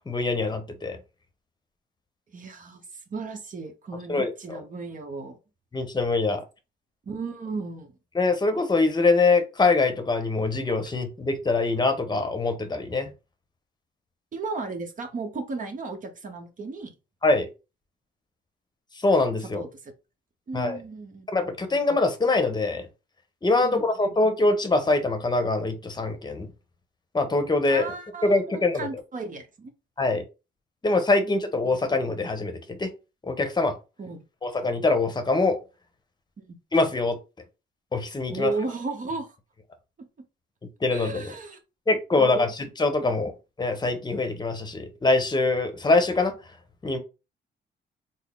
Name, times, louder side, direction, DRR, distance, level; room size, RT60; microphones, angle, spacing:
voice 1, 0.1-1.0 4.1-4.3 5.7-6.4 8.1-13.1 17.2-17.5 19.0-19.6 20.5-20.8 21.3-22.9 23.4-26.5 27.1-27.8 28.2-28.9 30.0-30.3 30.8-32.9 33.3-33.8 34.4-35.6 36.7-37.2 37.9-38.5 40.8-41.3 41.9-43.3 43.6-46.3 46.8-47.0, left 3 dB, 20° left, 0.9 m, -23 dB
voice 2, 2.3-5.4 7.1-8.0 14.3-16.9 19.5-19.9 20.5-21.3 23.6-24.1 27.7-29.7 31.2-31.3 34.0-34.2 36.4-36.6 38.3-39.3 40.0-40.1 40.9-41.6 42.2-42.5 43.1-43.2, right 3 dB, 40° right, 0.9 m, -35 dB
4.0 x 2.0 x 3.6 m
cardioid pair, 90°, 20 cm